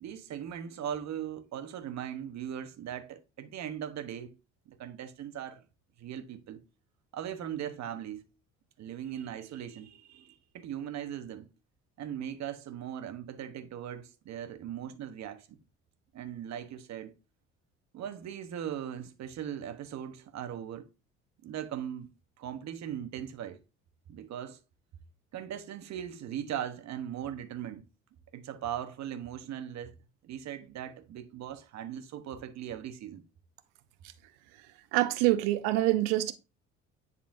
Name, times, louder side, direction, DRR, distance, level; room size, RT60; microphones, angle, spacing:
voice 1, 0.0-4.4 4.7-5.6 6.0-6.6 7.1-8.2 8.8-11.5 12.0-15.6 16.1-17.1 17.9-20.9 21.4-22.1 22.4-23.6 24.1-24.6 25.3-27.8 28.3-29.9 30.2-33.2, right 10 dB, 55° right, 1.1 m, -39 dB
voice 2, 34.9-36.3, right 16 dB, 75° right, 0.8 m, -25 dB
10.0 x 4.2 x 2.6 m
hypercardioid pair, 65°, 32 cm